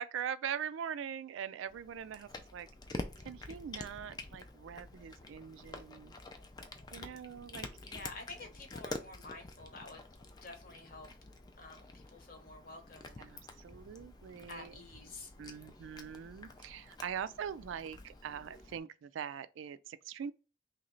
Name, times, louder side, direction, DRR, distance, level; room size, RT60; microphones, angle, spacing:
voice 1, 0.0-6.1 6.9-7.7 13.2-14.7 15.4-20.3, right 8 dB, 80° right, 0.3 m, -42 dB
Cat, 1.7-18.8, left 2 dB, 20° left, 0.3 m, -48 dB
voice 2, 7.8-10.0 10.4-11.1 11.6-13.4 14.5-15.3, left 3 dB, 45° left, 0.9 m, -49 dB
3.1 x 2.8 x 3.8 m
head